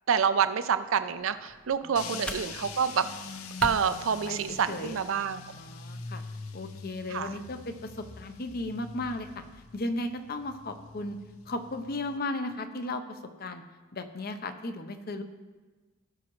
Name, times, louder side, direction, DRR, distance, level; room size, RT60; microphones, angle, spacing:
voice 1, 0.1-3.1 3.6-5.4 7.1-7.4, right 7 dB, 70° right, 12 dB, 0.5 m, -27 dB
sound 1, 1.1-5.1, equal, 5° left, 0.5 m, -44 dB
voice 2, 1.8-2.5 4.3-5.0 5.5-6.2 6.5-9.4 9.7-11.2 11.5-13.6 13.9-15.2, left 2 dB, 45° left, 8 dB, 0.7 m, -36 dB
sound 2, 2.0-12.2, left 4 dB, 90° left, 0.6 m, -44 dB
16.5 x 6.1 x 3.1 m, 1.3 s
head